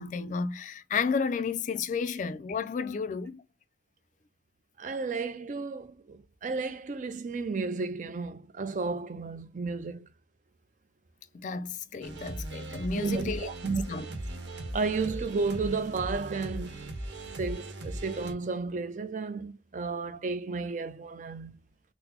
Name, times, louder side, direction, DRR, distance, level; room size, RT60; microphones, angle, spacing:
voice 1, 0.0-3.4 11.3-14.1 14.3-14.4, left 5 dB, 45° left, 0.3 m, -32 dB
voice 2, 4.8-10.1 12.9-13.8 14.1-14.2 14.7-16.9 17.3-21.6, right 4 dB, 45° right, 0.4 m, -33 dB
sound 1, 12.0-18.3, right 1 dB, 85° right, 0.9 m, -38 dB
3.9 x 2.0 x 2.9 m
head